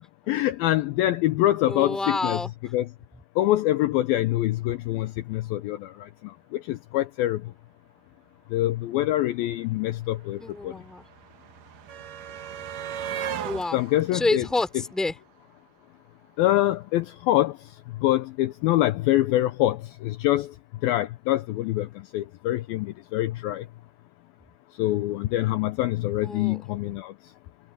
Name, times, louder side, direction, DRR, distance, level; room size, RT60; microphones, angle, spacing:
voice 1, 0.3-2.4 2.7-2.9 3.4-7.4 8.5-10.7 13.7-14.5 16.4-17.6 18.0-20.5 20.8-21.9 22.1-23.7 24.8-27.1, left 15 dB, 75° left, 2.3 m, -25 dB
voice 2, 1.7-2.5 10.4-11.0 13.4-13.8 14.1-15.1 26.2-26.6, left 2 dB, ahead, 2.7 m, -28 dB
sound 1, 9.1-9.2 9.3-15.5 16.7-16.8 17.1-17.3, right 9 dB, 65° right, 2.4 m, -38 dB
omnidirectional pair, 4.7 m